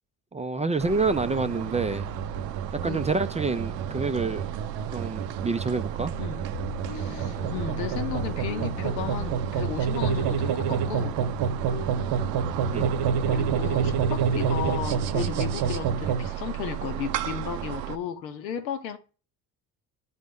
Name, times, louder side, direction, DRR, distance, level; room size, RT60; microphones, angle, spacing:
voice 1, 0.3-2.1 2.8-4.4 4.9-6.1 12.7-12.9, right 4 dB, 15° right, 0.4 m, -27 dB
sound 1, 0.8-18.0, right 11 dB, 75° right, 0.7 m, -35 dB
sound 2, 1.0-16.3, right 7 dB, 50° right, 0.9 m, -29 dB
voice 2, 6.1-6.5 6.9-11.2 13.2-19.0, left 8 dB, 80° left, 1.0 m, -34 dB
sound 3, 6.5-15.4, left 7 dB, 35° left, 0.9 m, -40 dB
10.5 x 4.1 x 3.5 m
figure-of-eight pair, 50°, 50 cm